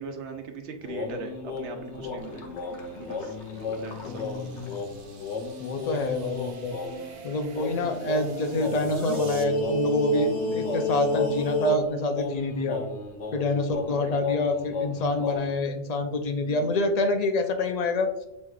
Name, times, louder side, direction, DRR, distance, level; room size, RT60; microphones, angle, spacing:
voice 1, 0.0-2.5 3.0-3.4 3.8-4.3 7.9-8.0 12.7-12.9 13.9-14.0 16.4-16.7, right 4 dB, 85° right, 5 dB, 1.0 m, -40 dB
sound 1, 0.8-7.1 7.5-15.6, left 2 dB, 80° left, 1.0 m, -32 dB
sound 2, 1.5-9.4, right 3 dB, 50° right, 0.5 m, -48 dB
voice 2, 4.1-4.8 5.6-6.7 7.2-12.8 13.3-18.1, left 2 dB, 50° left, 5 dB, 0.5 m, -27 dB
6.3 x 3.1 x 2.3 m, 0.89 s
omnidirectional pair, 1.2 m